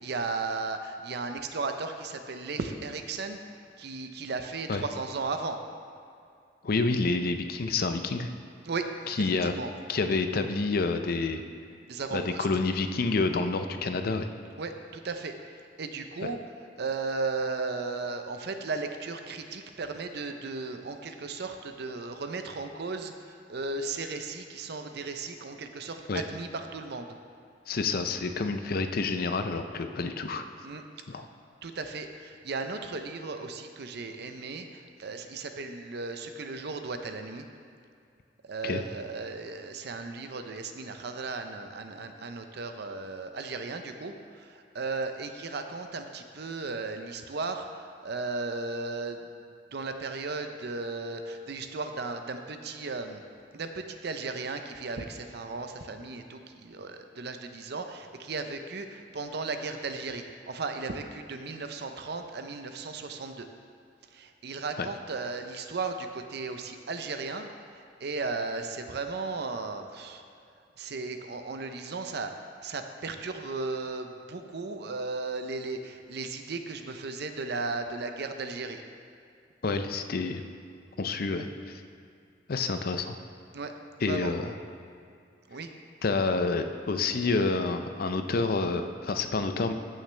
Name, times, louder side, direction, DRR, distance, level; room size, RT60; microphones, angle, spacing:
voice 1, 0.0-3.4 3.8-5.6 8.6-9.7 11.9-12.5 14.6-16.4 16.8-27.1 30.6-30.8 31.6-37.5 38.4-49.2 49.7-53.2 53.5-63.5 64.1-70.2 70.8-72.3 72.6-78.8 83.5-83.7 84.1-84.3 85.5-85.7, right 3 dB, 65° right, 7 dB, 0.6 m, -35 dB
voice 2, 6.6-8.3 9.1-9.5 9.9-11.4 12.1-14.3 16.2-16.3 26.1-26.2 27.7-30.4 31.1-31.3 38.6-38.8 64.8-64.9 79.6-80.4 81.0-81.8 82.5-83.2 84.0-84.5 86.0-89.7, left 3 dB, 55° left, 8 dB, 0.5 m, -28 dB
14.5 x 6.4 x 3.3 m, 2.3 s
head